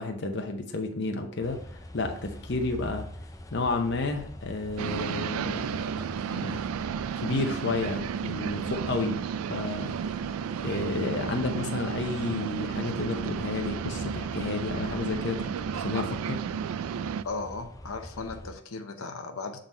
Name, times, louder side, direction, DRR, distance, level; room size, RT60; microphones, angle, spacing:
voice 1, 0.0-3.1 3.5-5.8 6.3-6.6 7.2-9.2 9.5-10.0 10.6-16.4, left 3 dB, 55° left, 4 dB, 0.7 m, -31 dB
sound 1, 1.4-18.5, left 1 dB, 15° left, 0.4 m, -44 dB
sound 2, 4.8-17.2, right 7 dB, 85° right, 0.3 m, -33 dB
voice 2, 17.2-19.6, left 3 dB, 90° left, 5 dB, 0.8 m, -36 dB
7.7 x 3.9 x 4.2 m, 0.66 s
head